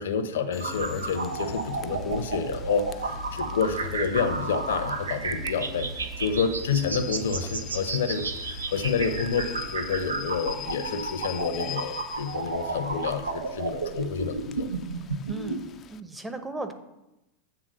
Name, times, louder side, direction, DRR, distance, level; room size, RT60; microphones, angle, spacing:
voice 1, 0.0-14.8, left 6 dB, 70° left, 8 dB, 0.8 m, -29 dB
Rain / Train, 0.5-16.0, left 9 dB, 30° left, 0.4 m, -44 dB
sound 1, 0.6-15.6, right 3 dB, 85° right, 0.7 m, -32 dB
voice 2, 15.3-15.6 15.9-16.7, right 2 dB, 10° right, 7 dB, 0.9 m, -36 dB
7.9 x 3.8 x 6.2 m, 0.93 s
hypercardioid pair, 95°, 0 cm